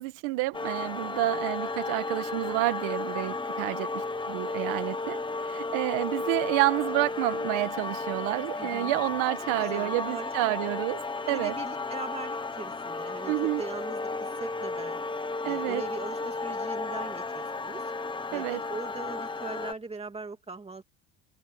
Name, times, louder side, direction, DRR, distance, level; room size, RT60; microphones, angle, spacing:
voice 1, 0.0-5.2 5.5-11.0 11.3-11.6 13.3-13.6 15.4-15.8 18.3-18.6, right 20 dB, 85° right, 1.6 m, -29 dB
sound 1, 0.5-19.7, left 3 dB, 10° left, 1.1 m, -33 dB
voice 2, 8.6-9.0 9.6-10.5 11.2-15.0 15.4-17.9 18.3-20.8, right 3 dB, 15° right, 2.8 m, -41 dB
cardioid pair, 160°, 46 cm